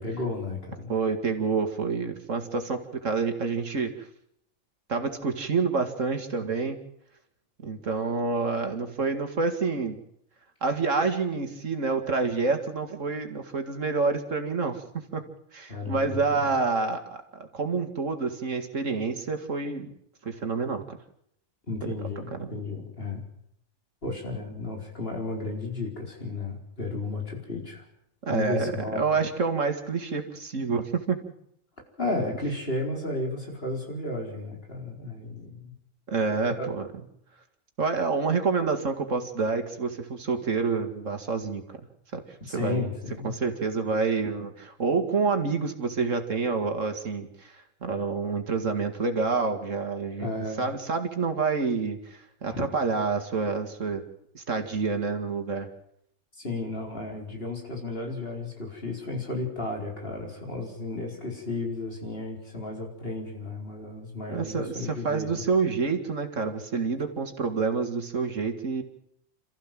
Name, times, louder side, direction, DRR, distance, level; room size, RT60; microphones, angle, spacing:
voice 1, 0.0-0.9 15.7-16.5 21.7-23.2 24.0-27.8 28.3-29.0 32.0-35.7 36.4-36.7 42.5-43.3 50.2-50.7 52.5-52.6 56.4-65.4, left 2 dB, 50° left, 1 dB, 4.6 m, -33 dB
voice 2, 0.9-4.1 4.9-6.8 7.6-10.0 10.6-15.2 15.5-19.9 20.2-21.0 22.3-22.5 28.3-31.2 36.1-36.9 37.8-41.6 42.1-42.2 42.5-42.9 43.2-50.3 50.6-54.0 54.3-55.7 64.3-68.8, right 4 dB, 80° right, 6 dB, 2.6 m, -28 dB
27.5 x 14.5 x 7.6 m, 0.73 s
omnidirectional pair, 1.3 m